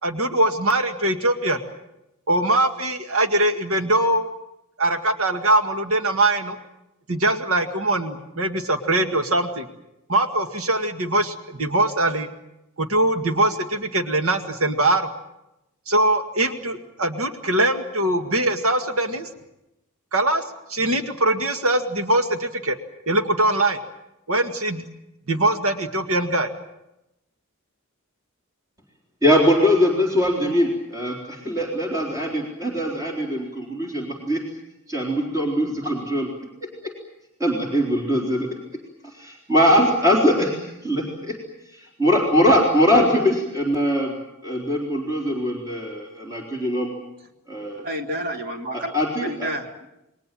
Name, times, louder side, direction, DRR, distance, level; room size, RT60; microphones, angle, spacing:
voice 1, 0.0-1.6 2.3-4.3 4.8-6.6 7.1-9.7 10.1-12.3 12.8-15.1 15.9-19.3 20.1-20.4 20.7-22.8 23.1-23.8 24.3-24.8 25.3-26.5, right 1 dB, 75° right, 5 dB, 2.0 m, -22 dB
voice 2, 29.2-34.4 34.9-36.3 37.4-38.5 39.0-41.3 41.7-44.2 44.4-46.9 47.5-47.9 48.7-49.5, equal, 15° right, -1 dB, 3.9 m, -21 dB
voice 3, 47.8-49.9, equal, 45° right, 3 dB, 2.7 m, -30 dB
28.5 x 22.0 x 7.6 m, 0.89 s
head